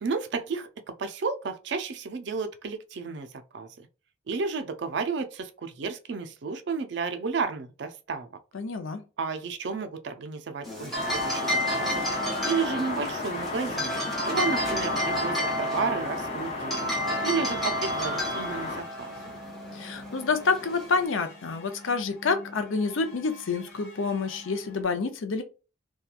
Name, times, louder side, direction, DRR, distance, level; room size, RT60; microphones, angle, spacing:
voice 1, 0.0-3.3 3.5-3.7 4.3-8.3 9.2-12.1 12.4-13.9 14.3-16.9 17.2-19.1, right 5 dB, 60° right, 0.4 m, -32 dB
voice 2, 8.5-9.0 19.7-25.4, left 4 dB, 80° left, 0.5 m, -28 dB
sound 1, 10.6-21.0, equal, ahead, 0.8 m, -32 dB
sound 2, 10.8-24.8, left 2 dB, 55° left, 1.1 m, -47 dB
sound 3, 10.9-18.8, left 2 dB, 30° left, 0.6 m, -33 dB
2.8 x 2.2 x 2.3 m
head